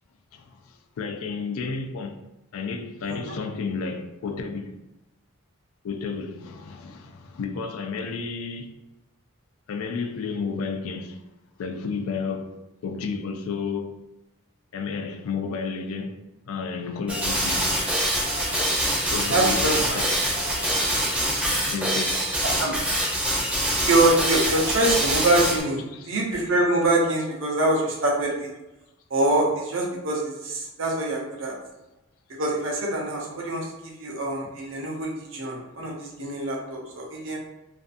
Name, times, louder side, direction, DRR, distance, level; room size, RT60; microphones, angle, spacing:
voice 1, 0.3-2.2 2.5-4.8 5.8-8.7 9.7-11.2 11.6-14.0 14.7-17.7 19.1-20.8 21.7-22.4 23.5-23.6 25.9-26.1, left 5 dB, 75° left, 0.3 m, -32 dB
sound 1, 17.1-25.6, right 1 dB, 5° right, 0.6 m, -24 dB
voice 2, 19.3-20.0 22.6-22.8 23.8-28.5 29.1-31.5 32.4-33.7 34.0-37.4, right 2 dB, 60° right, 0.6 m, -24 dB
2.5 x 2.3 x 2.5 m
head